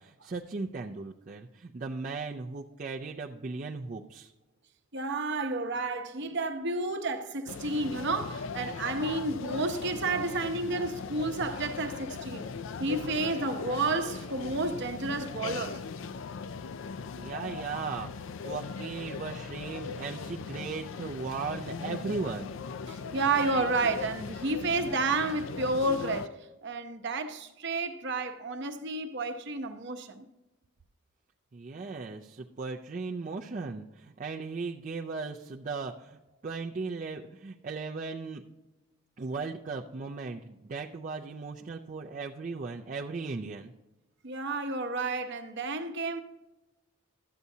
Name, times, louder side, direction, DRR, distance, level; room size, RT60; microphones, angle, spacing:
voice 1, 0.0-4.3 17.2-22.5 31.5-38.4 39.2-43.7, right 4 dB, 35° right, 0.4 m, -37 dB
voice 2, 4.9-12.5 12.8-15.8 17.5-17.6 22.9-26.3 26.6-30.2 44.2-46.2, right 3 dB, 55° right, 0.8 m, -31 dB
sound 1, 7.5-26.3, left 5 dB, 60° left, 0.4 m, -39 dB
12.5 x 8.1 x 2.7 m
head